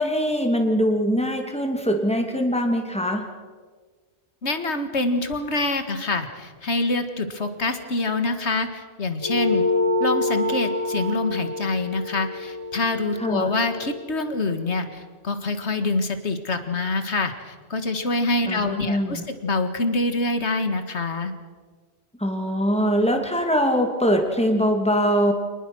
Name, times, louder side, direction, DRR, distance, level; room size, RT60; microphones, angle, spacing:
voice 1, 0.0-3.3 13.2-13.5 18.5-19.2 22.2-25.3, equal, 5° left, 3 dB, 2.6 m, -22 dB
voice 2, 4.4-9.7 10.0-21.3, left 2 dB, 70° left, 8 dB, 2.1 m, -25 dB
sound 1, 9.2-14.0, left 2 dB, 25° left, 1.8 m, -26 dB
27.0 x 20.5 x 6.3 m, 1.5 s
omnidirectional pair, 1.2 m